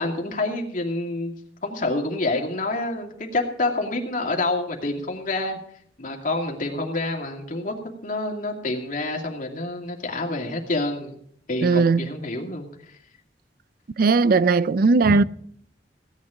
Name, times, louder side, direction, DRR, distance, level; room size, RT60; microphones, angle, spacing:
voice 1, 0.0-1.3 1.6-5.6 6.0-7.7 8.0-11.2 11.5-12.7 15.0-15.2, left 2 dB, 50° left, 2.4 m, -27 dB
voice 2, 11.6-12.0 14.0-15.2, right 4 dB, 55° right, 0.4 m, -18 dB
16.5 x 9.7 x 5.0 m
head